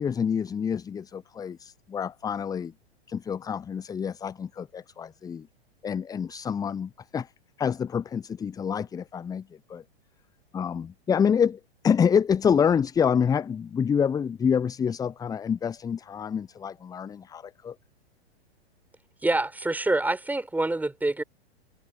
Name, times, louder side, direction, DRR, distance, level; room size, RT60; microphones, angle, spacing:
voice 1, 0.0-2.7 3.1-5.5 5.8-7.3 7.6-9.8 10.5-17.8, left 7 dB, 10° left, 0.8 m, -27 dB
voice 2, 19.2-21.2, right 2 dB, 5° right, 5.8 m, -26 dB
figure-of-eight pair, 100°, 32 cm